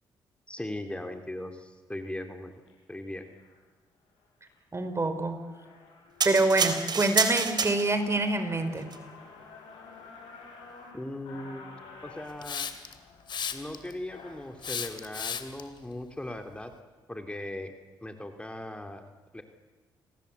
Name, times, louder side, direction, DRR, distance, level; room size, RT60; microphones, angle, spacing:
voice 1, 0.5-2.5 2.9-3.3 10.9-11.7 12.0-12.7 13.5-16.7 17.1-17.7 18.0-19.4, left 1 dB, 10° left, 6 dB, 3.1 m, -39 dB
sound 1, 2.5-2.7 3.3-3.6 4.1-4.5 5.0-5.1 5.3-14.7, left 4 dB, 85° left, 6.7 m, -51 dB
voice 2, 4.7-5.4 6.2-8.9, right 2 dB, 30° right, 8 dB, 4.4 m, -26 dB
sound 2, 6.2-8.2 8.8-9.0, right 5 dB, 50° right, 3.6 m, -28 dB
Hiss, 12.4-12.9 13.3-13.9 14.6-15.6, left 7 dB, 55° left, 2.6 m, -34 dB
27.5 x 18.5 x 8.3 m, 1.3 s
supercardioid pair, 55°, 9 cm